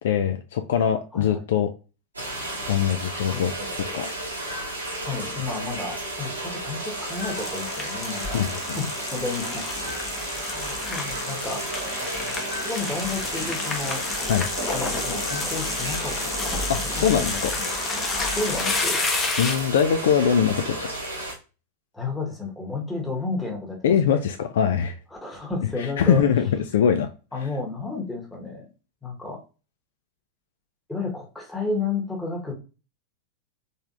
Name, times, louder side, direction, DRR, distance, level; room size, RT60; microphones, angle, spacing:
voice 1, 0.0-1.7 2.7-3.5 3.8-4.1 8.3-8.8 14.3-14.5 16.7-17.5 19.4-20.9 23.8-25.0 25.6-27.1, left 8 dB, 60° left, 7 dB, 0.3 m, -22 dB
sound 1, 2.1-21.3, right 1 dB, 80° right, 1.2 m, -33 dB
voice 2, 3.3-3.8 5.0-8.4 8.8-9.6 10.5-11.6 12.6-14.0 14.7-16.1 16.4-17.7 18.4-19.0 21.9-24.2 25.2-26.2 27.3-28.7 29.0-29.4 30.9-32.5, left 3 dB, 5° left, -1 dB, 1.2 m, -32 dB
sound 2, 6.8-19.8, left 3 dB, 20° left, 0.9 m, -30 dB
3.9 x 3.3 x 2.4 m, 0.33 s
figure-of-eight pair, 90°, 0 cm